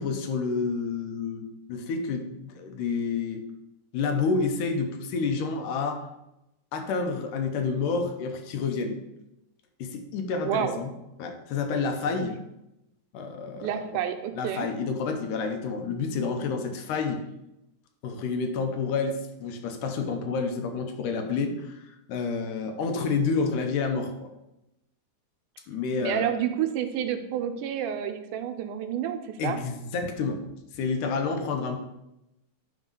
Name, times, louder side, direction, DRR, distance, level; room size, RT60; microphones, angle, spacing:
voice 1, 0.0-3.4 3.9-6.0 6.7-9.0 9.8-10.9 11.2-12.4 13.1-14.0 14.4-17.2 18.0-24.3 25.7-26.3 29.4-30.4 30.7-31.8, left 4 dB, 85° left, 5 dB, 2.4 m, -29 dB
voice 2, 10.4-10.8 13.6-14.7 26.0-29.6, right 9 dB, 85° right, 7 dB, 2.1 m, -29 dB
9.0 x 3.6 x 5.4 m, 0.91 s
omnidirectional pair, 3.6 m